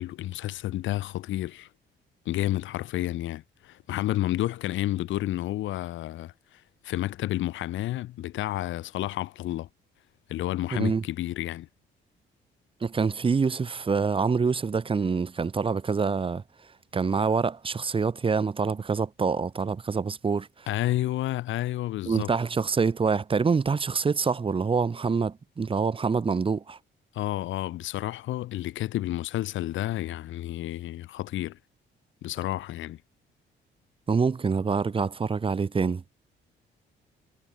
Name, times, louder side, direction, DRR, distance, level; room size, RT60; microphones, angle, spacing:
voice 1, 0.0-1.7 2.3-9.7 10.3-11.7 20.7-22.3 27.1-31.6 32.2-33.0, left 15 dB, 75° left, 0.6 m, -30 dB
voice 2, 10.7-11.0 12.8-20.7 22.1-26.8 34.1-36.0, right 5 dB, 25° right, 0.8 m, -26 dB
cardioid pair, 90°, 20 cm